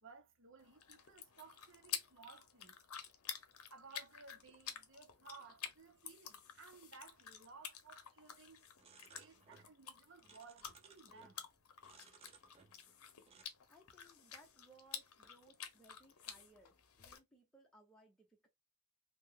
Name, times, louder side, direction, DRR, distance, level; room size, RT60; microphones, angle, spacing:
voice 1, 0.0-2.8 3.7-8.6 9.1-11.5, right 4 dB, 60° right, 0.7 m, -59 dB
sound 1, 0.6-17.2, left 8 dB, 85° left, 0.7 m, -51 dB
sound 2, 8.8-9.7 10.0-11.4 11.8-13.0 13.3-13.5, right 5 dB, 25° right, 0.4 m, -63 dB
voice 2, 13.7-18.5, right 1 dB, 5° left, 0.8 m, -65 dB
3.0 x 2.2 x 3.5 m
head